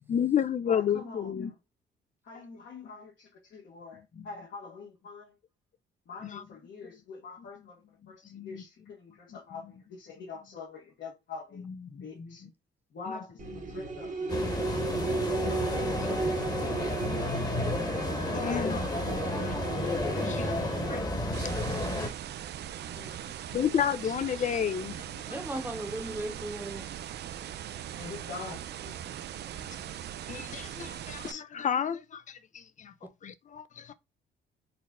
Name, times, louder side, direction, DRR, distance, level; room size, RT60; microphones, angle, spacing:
voice 1, 0.1-1.5 6.3-6.4 8.3-8.5 11.9-12.0 14.9-15.1 15.4-16.0 18.3-19.6 20.1-21.0 21.4-21.8 23.5-25.2 30.3-32.9 33.2-33.9, left 8 dB, 40° left, 0.5 m, -32 dB
voice 2, 0.6-1.6 2.2-5.3 6.1-11.6 12.0-12.4 12.9-14.9 15.8-16.5 22.4-23.3 27.9-29.5, left 4 dB, 65° left, 1.3 m, -45 dB
sound 1, 13.4-21.0, right 4 dB, 40° right, 1.1 m, -35 dB
sound 2, 14.3-22.1, left 1 dB, 20° left, 1.2 m, -31 dB
voice 3, 15.8-16.2 25.3-26.8, right 1 dB, 10° right, 0.9 m, -37 dB
sound 3, 21.3-31.3, right 10 dB, 60° right, 0.4 m, -40 dB
4.2 x 2.1 x 3.5 m
cardioid pair, 90°, 20 cm